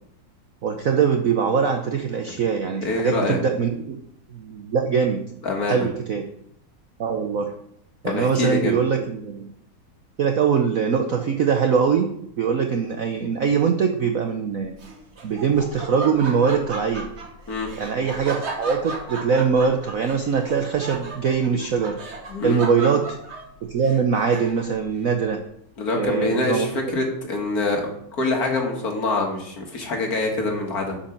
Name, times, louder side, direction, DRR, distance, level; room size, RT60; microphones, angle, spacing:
voice 1, 0.6-4.0 4.3-5.2 5.7-6.2 7.0-7.5 8.0-9.5 10.2-12.1 12.4-14.7 15.2-17.1 17.8-22.0 22.4-23.2 23.6-25.4 25.9-26.8, right 6 dB, 65° right, 5 dB, 0.9 m, -22 dB
voice 2, 2.8-3.4 5.4-5.9 8.0-8.7 17.5-17.7 22.3-22.6 25.8-31.0, left 2 dB, 50° left, 2 dB, 1.9 m, -25 dB
Laughter, 14.8-24.8, right 2 dB, 40° right, 1.2 m, -35 dB
8.5 x 5.5 x 5.8 m, 0.71 s
omnidirectional pair, 2.2 m